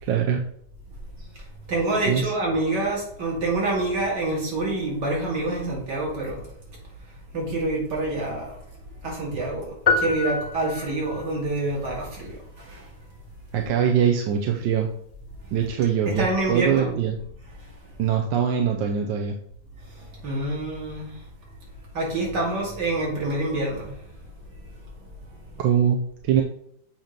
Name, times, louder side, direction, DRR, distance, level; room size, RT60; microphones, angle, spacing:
voice 1, 0.0-0.4 2.1-2.3 13.5-14.9 15.5-17.2 18.0-19.3 25.6-26.4, right 8 dB, 90° right, 3 dB, 1.4 m, -23 dB
voice 2, 1.7-6.4 7.3-8.6 9.0-12.9 16.1-16.9 20.2-21.1 21.9-23.9, right 2 dB, 70° right, -3 dB, 2.7 m, -26 dB
sound 1, 9.9-11.3, left 4 dB, 60° left, 0.4 m, -25 dB
7.7 x 2.9 x 5.1 m, 0.68 s
omnidirectional pair, 2.0 m